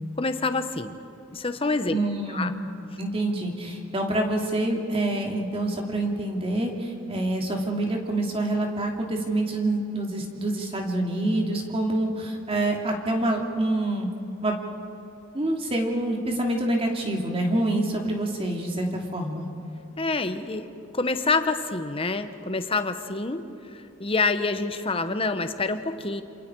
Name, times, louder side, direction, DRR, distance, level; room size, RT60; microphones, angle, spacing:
voice 1, 0.2-1.0 1.3-2.0 2.3-2.5 20.0-20.7 20.9-23.4 23.7-26.2, left 3 dB, 25° left, 9 dB, 1.0 m, -27 dB
voice 2, 1.9-2.5 3.0-14.1 14.4-14.5 15.3-19.4, right 1 dB, 25° right, 0 dB, 2.9 m, -26 dB
28.0 x 27.5 x 4.7 m, 2.7 s
head